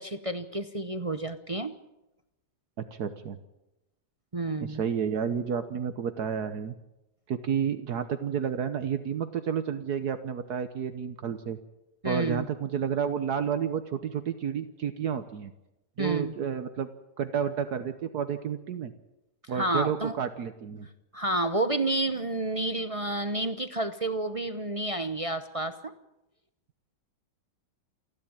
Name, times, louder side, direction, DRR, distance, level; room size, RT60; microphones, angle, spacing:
voice 1, 0.0-1.7 4.3-4.8 12.0-12.5 16.0-16.3 19.5-20.1 21.1-25.9, right 2 dB, 35° right, 9 dB, 0.5 m, -30 dB
voice 2, 2.8-3.4 4.6-6.7 7.3-11.6 12.0-15.5 16.0-16.9 17.2-18.9 19.5-20.9, right 7 dB, 65° right, 9 dB, 1.5 m, -31 dB
28.5 x 11.0 x 8.9 m, 0.93 s
omnidirectional pair, 1.9 m